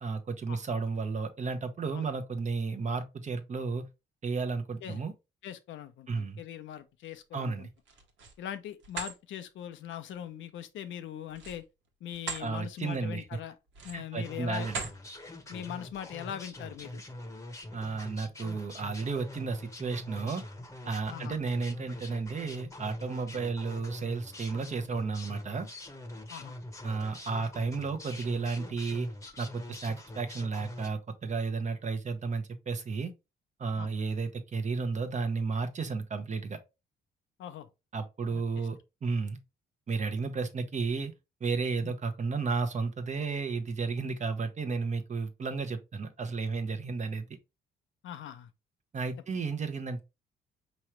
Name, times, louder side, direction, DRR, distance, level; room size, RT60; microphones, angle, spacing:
voice 1, 0.0-3.9 4.2-5.1 6.1-6.4 7.3-7.7 12.4-13.2 13.9-14.7 17.7-20.4 20.9-25.7 26.8-29.1 29.4-33.1 33.6-36.6 37.9-39.4 39.9-41.1 41.4-47.3 48.9-50.0, right 4 dB, 35° right, 0.9 m, -33 dB
voice 2, 5.4-7.7 8.4-11.6 12.0-13.6 13.8-14.7 15.5-17.0 21.1-21.4 26.3-26.6 33.8-33.9 37.4-37.7 38.3-38.7 41.8-41.9 48.0-48.5, left 10 dB, 75° left, 0.7 m, -41 dB
sound 1, 7.8-8.4 8.8-9.2 11.3-12.5 12.9-13.1 13.7-14.2 14.6-15.0, right 5 dB, 75° right, 1.3 m, -39 dB
sound 2, 14.2-30.9, left 1 dB, 15° left, 1.0 m, -44 dB
4.7 x 3.1 x 3.1 m
cardioid pair, 90°, 20 cm